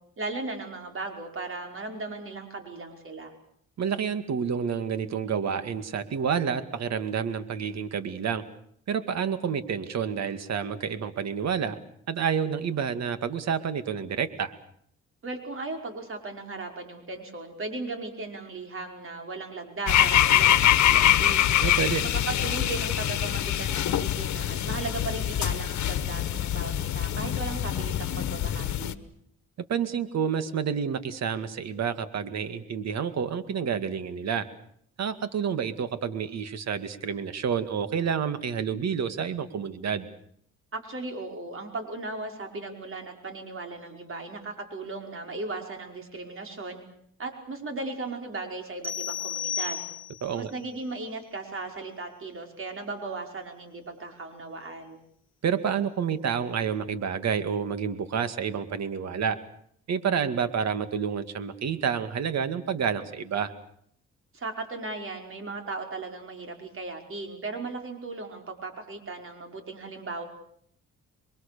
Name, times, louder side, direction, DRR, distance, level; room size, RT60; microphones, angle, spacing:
voice 1, 0.2-3.3 15.2-21.5 22.3-28.9 40.7-46.8 47.2-49.8 50.3-55.0 64.3-70.3, right 3 dB, 45° right, 4 dB, 5.3 m, -37 dB
voice 2, 3.8-8.4 8.9-11.8 12.1-14.5 21.6-22.0 29.7-34.5 35.0-40.1 50.2-50.5 55.4-59.4 59.9-63.5, right 7 dB, 60° right, 11 dB, 2.3 m, -29 dB
sound 1, 19.9-29.0, left 11 dB, 70° left, 1.4 m, -24 dB
sound 2, 48.8-50.4, left 7 dB, 5° right, 5.6 m, -33 dB
28.0 x 23.0 x 6.9 m, 0.67 s
cardioid pair, 90°, 30 cm